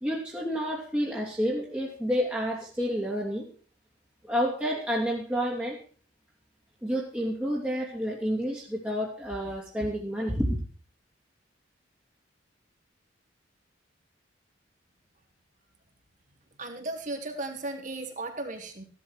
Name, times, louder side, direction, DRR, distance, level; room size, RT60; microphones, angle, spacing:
voice 1, 0.0-3.5 4.2-5.8 6.8-10.6, equal, 10° right, -4 dB, 2.9 m, -29 dB
voice 2, 16.5-18.8, right 2 dB, 40° right, 4 dB, 3.6 m, -36 dB
17.0 x 12.5 x 4.7 m, 0.42 s
head